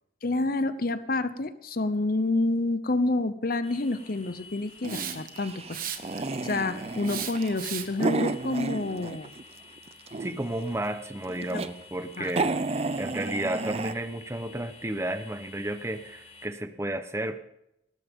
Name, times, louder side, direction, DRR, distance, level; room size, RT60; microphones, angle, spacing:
voice 1, 0.2-5.8 6.1-9.3 11.5-11.6 12.2-12.3, left 2 dB, 50° left, 12 dB, 0.9 m, -28 dB
sound 1, 3.6-16.4, left 4 dB, 35° left, 4.8 m, -51 dB
sound 2, 4.8-9.4 9.8-10.6 11.2-11.7 12.0-12.1 12.3-13.9, right 3 dB, 35° right, 0.6 m, -32 dB
Hiss, 4.8-5.4 5.7-6.3 7.0-8.0, right 9 dB, 50° right, 1.3 m, -35 dB
voice 2, 10.2-12.5 13.0-17.4, right 1 dB, 15° right, 10 dB, 1.0 m, -32 dB
19.5 x 12.0 x 3.7 m, 0.81 s
head